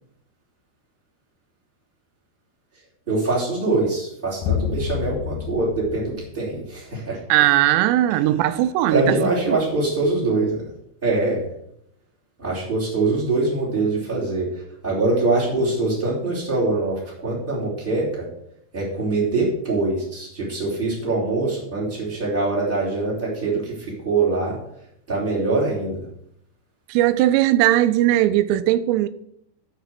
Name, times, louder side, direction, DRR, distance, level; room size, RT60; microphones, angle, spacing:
voice 1, 3.1-7.2 8.9-10.6 11.0-11.5 12.4-18.3 18.7-24.6 25.1-26.0, right 3 dB, 15° right, 2.7 m, -23 dB
sound 1, 4.4-7.0, left 9 dB, 85° left, 2.2 m, -28 dB
voice 2, 7.3-9.6 26.9-29.1, right 14 dB, 85° right, 2.7 m, -19 dB
8.3 x 5.8 x 7.7 m
omnidirectional pair, 4.9 m